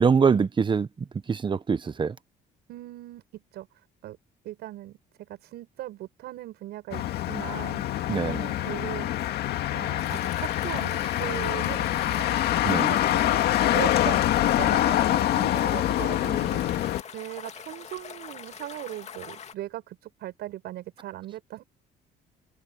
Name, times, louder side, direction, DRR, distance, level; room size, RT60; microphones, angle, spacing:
voice 1, 0.0-2.1 8.1-8.4 12.6-12.9, right 6 dB, 30° right, 1.1 m, -24 dB
voice 2, 2.7-3.7 4.0-4.2 4.4-7.8 8.2-9.1 9.7-12.3 12.8-13.4 13.7-16.8 17.1-21.6, right 15 dB, 75° right, 7.7 m, -39 dB
Motor vehicle (road), 6.9-17.0, left 13 dB, 70° left, 2.0 m, -25 dB
sound 1, 10.0-19.5, left 7 dB, 40° left, 2.3 m, -42 dB
cardioid pair, 110°, 17 cm